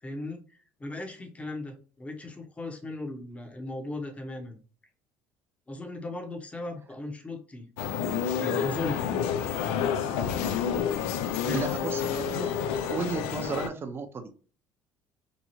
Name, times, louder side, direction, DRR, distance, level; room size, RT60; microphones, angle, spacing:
voice 1, 0.0-4.6 5.7-7.7 8.0-9.0 11.3-11.6, left 2 dB, 15° left, 3 dB, 0.8 m, -37 dB
sound 1, 7.8-13.7, left 8 dB, 85° left, 0.3 m, -29 dB
voice 2, 11.5-14.3, right 4 dB, 30° right, 7 dB, 0.6 m, -34 dB
2.9 x 2.3 x 2.7 m, 0.38 s
supercardioid pair, 100°, 8 cm